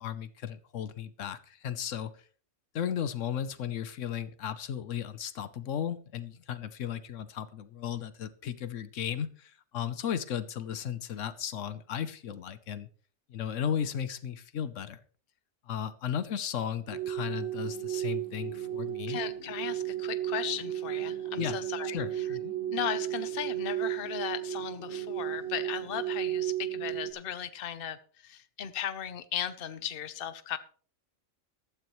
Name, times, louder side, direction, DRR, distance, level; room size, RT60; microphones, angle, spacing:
voice 1, 0.0-2.1 2.7-12.9 13.3-15.0 15.7-19.2 21.4-21.6 21.9-22.5, left 9 dB, 80° left, 13 dB, 1.1 m, -35 dB
sound 1, 16.9-27.1, right 12 dB, 75° right, 4.1 m, -34 dB
voice 2, 19.1-22.4 22.7-30.6, left 10 dB, 50° left, 13 dB, 1.0 m, -37 dB
14.5 x 12.0 x 3.1 m, 0.43 s
omnidirectional pair, 1.3 m